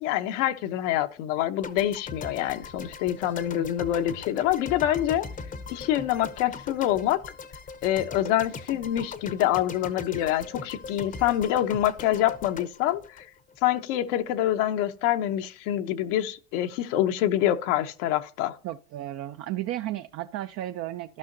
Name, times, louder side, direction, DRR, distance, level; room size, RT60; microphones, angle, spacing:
voice 1, 0.0-5.3 5.7-7.2 7.8-13.3 13.6-18.5, left 12 dB, 75° left, 1.0 m, -26 dB
sound 1, 1.6-13.8, left 4 dB, 20° left, 0.7 m, -40 dB
voice 2, 18.6-21.2, right 14 dB, 40° right, 0.5 m, -33 dB
14.0 x 5.6 x 2.7 m
supercardioid pair, 125°, 37 cm